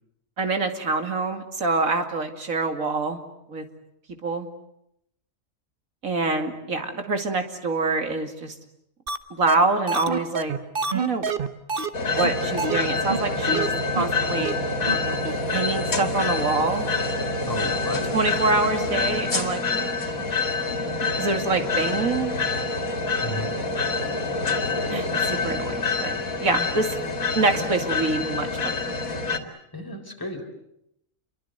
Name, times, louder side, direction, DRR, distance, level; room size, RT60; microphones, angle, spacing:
voice 1, 0.4-3.2 3.5-3.6 4.2-4.5 6.0-8.5 9.3-10.5 10.9-11.3 12.1-14.6 14.8-15.2 15.5-16.9 18.1-19.9 20.2-20.8 21.2-22.3 24.9-27.0 27.3-28.9, right 3 dB, 80° right, 6 dB, 2.9 m, -26 dB
sound 1, 9.1-9.2 9.5-9.6 9.9-11.9 12.2-12.3 12.6-12.8 13.1-13.2 13.5-13.7 14.0-14.1 14.4-14.5 14.9-15.0 15.2-15.3, right 4 dB, 40° right, 1.3 m, -26 dB
sound 2, 11.9-29.4, left 3 dB, 85° left, 2.8 m, -26 dB
voice 2, 17.4-18.1 23.2-23.5 29.7-30.4, left 1 dB, 15° left, 3 dB, 4.5 m, -32 dB
28.5 x 23.5 x 8.0 m, 0.79 s
omnidirectional pair, 1.4 m